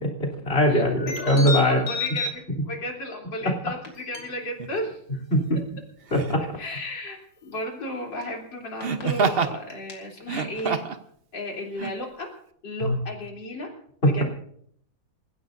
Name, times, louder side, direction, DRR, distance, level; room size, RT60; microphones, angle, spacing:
voice 1, 0.0-1.8 3.4-3.5 5.3-5.6 6.1-6.4 12.8-13.0 14.0-14.2, equal, 30° left, 2 dB, 3.7 m, -21 dB
voice 2, 0.7-5.0 6.6-7.2 7.4-10.8 11.3-12.3 12.6-13.7 14.1-14.2, left 1 dB, 75° left, 0 dB, 4.2 m, -34 dB
sound 1, 1.0-2.3 3.8-4.3 7.6-7.7 8.2-8.3 8.8-9.0 9.7-9.9 10.6-10.7, left 3 dB, 50° left, 3.1 m, -31 dB
Laughter, 4.6-4.8 6.1-6.5 8.8-9.6 10.2-11.0 11.8-11.9, right 5 dB, 45° right, 0.8 m, -26 dB
28.0 x 15.5 x 2.7 m, 0.65 s
omnidirectional pair, 2.0 m